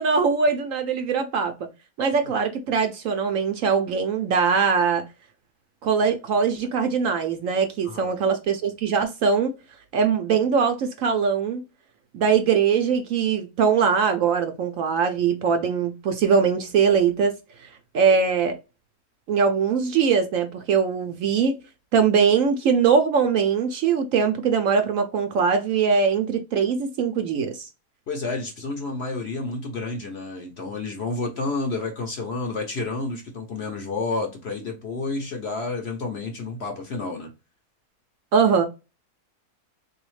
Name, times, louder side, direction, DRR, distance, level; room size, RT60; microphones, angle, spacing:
voice 1, 0.0-1.5 2.0-5.0 5.8-9.5 9.9-11.6 12.1-17.3 17.9-18.5 19.3-21.6 21.9-27.7 38.3-38.6, right 6 dB, 70° right, 0.8 m, -21 dB
voice 2, 28.1-37.3, left 3 dB, 55° left, 0.8 m, -30 dB
3.9 x 2.7 x 3.0 m
omnidirectional pair, 1.7 m